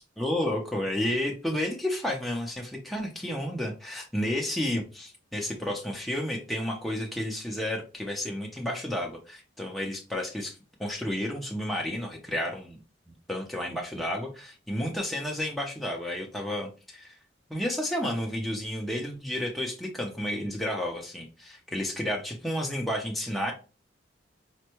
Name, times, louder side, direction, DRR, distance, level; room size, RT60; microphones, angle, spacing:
voice 1, 0.2-12.8 13.3-17.2 17.5-23.5, left 1 dB, ahead, -1 dB, 0.5 m, -31 dB
4.3 x 2.1 x 2.9 m, 0.34 s
head